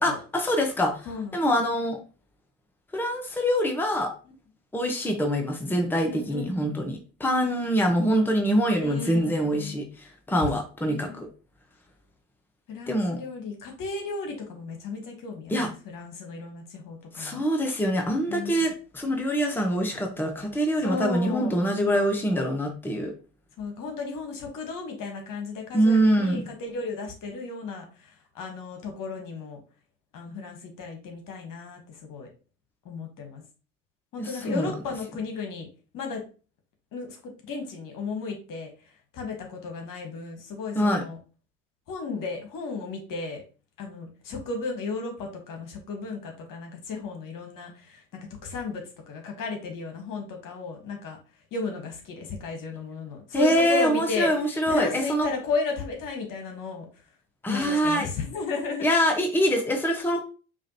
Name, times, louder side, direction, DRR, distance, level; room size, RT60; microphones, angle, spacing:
voice 1, 0.0-1.1 1.3-2.0 2.9-4.1 4.7-11.3 12.9-13.2 15.5-15.7 17.1-23.1 25.7-26.4 34.2-34.7 40.7-41.0 53.3-55.3 57.4-58.1 58.8-60.2, equal, 5° left, 3 dB, 0.8 m, -24 dB
voice 2, 1.0-1.5 4.2-4.3 6.0-6.8 8.8-9.8 10.9-11.2 12.7-17.4 18.3-18.7 20.8-21.5 23.6-29.6 30.1-32.3 32.8-33.4 34.1-35.7 35.9-36.2 36.9-38.7 39.1-41.2 41.9-43.4 43.8-48.0 48.4-51.2 51.5-54.3 54.7-56.9 57.5-58.9, left 4 dB, 55° left, 3 dB, 1.2 m, -34 dB
4.9 x 2.5 x 2.8 m, 0.36 s
hypercardioid pair, 60°, 40 cm